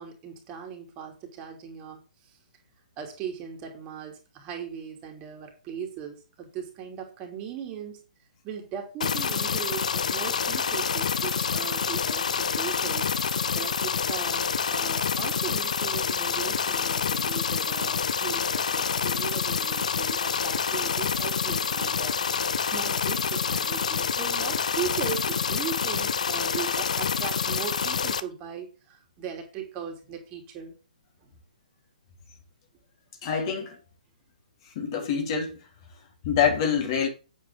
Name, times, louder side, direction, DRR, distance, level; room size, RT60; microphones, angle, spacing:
voice 1, 0.0-2.0 2.2-2.4 3.0-8.0 8.4-13.1 13.5-22.2 22.7-30.7 31.2-31.3, right 8 dB, 25° right, 3.1 m, -38 dB
sound 1, 9.0-28.2, left 6 dB, 55° left, 1.0 m, -27 dB
voice 2, 33.2-33.8 34.8-35.6 36.2-37.1, left 7 dB, 35° left, 3.5 m, -25 dB
9.4 x 8.5 x 3.7 m
figure-of-eight pair, 130°, 5 cm